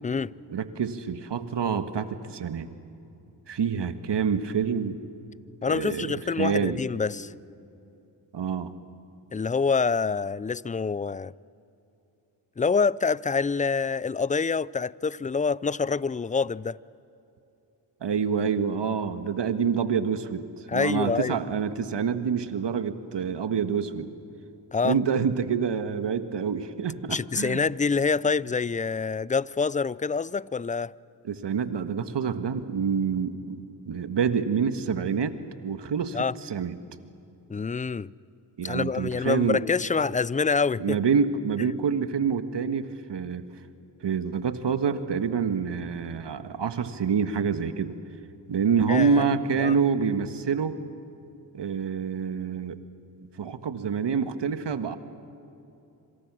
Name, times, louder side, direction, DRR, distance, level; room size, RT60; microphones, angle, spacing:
voice 1, 0.5-2.7 3.5-5.0 5.7-6.8 8.3-8.7 18.0-20.4 20.7-24.1 24.8-27.7 31.2-33.6 33.9-35.4 35.6-36.7 38.6-39.6 40.8-43.4 44.0-48.0 48.5-50.8 51.5-52.8 53.4-55.0, right 6 dB, 60° right, 1.7 m, -27 dB
voice 2, 5.6-7.3 9.3-11.3 12.6-16.8 20.7-21.4 24.7-25.0 27.1-30.9 36.1-36.3 37.5-38.1 38.6-41.0 48.9-49.2 49.6-49.7, left 5 dB, 15° left, 0.4 m, -26 dB
26.5 x 26.0 x 6.3 m
supercardioid pair, 45°, 48 cm